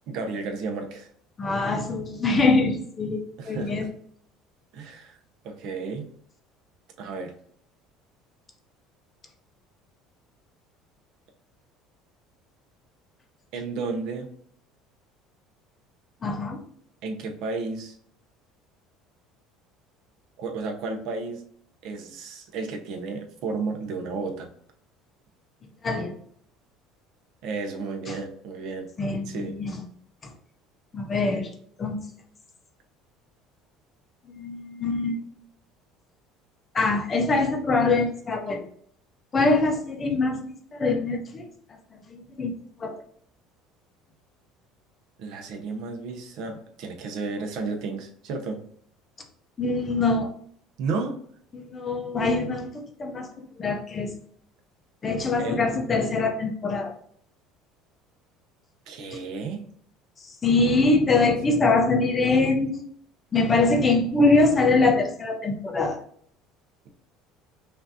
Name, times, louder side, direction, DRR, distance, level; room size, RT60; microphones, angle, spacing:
voice 1, 0.1-1.1 3.4-3.9 4.7-5.2 5.4-6.1 7.0-7.4 13.5-14.3 17.0-17.9 20.4-21.4 21.8-24.5 27.4-28.9 29.3-29.5 45.2-48.6 50.8-51.2 55.4-55.6 58.9-59.7, right 4 dB, 60° right, 4 dB, 0.8 m, -32 dB
voice 2, 1.4-3.9 16.2-16.6 25.8-26.1 28.1-28.2 29.0-29.8 30.2-30.3 30.9-31.5 31.8-32.0 34.3-35.2 36.7-38.6 39.3-40.4 40.7-41.5 42.1-42.5 42.8-42.9 49.6-50.3 51.5-54.1 55.0-56.9 59.1-59.2 60.2-62.8 63.3-66.0, left 3 dB, 25° left, 4 dB, 0.6 m, -23 dB
5.7 x 2.6 x 2.8 m, 0.62 s
cardioid pair, 145°, 0 cm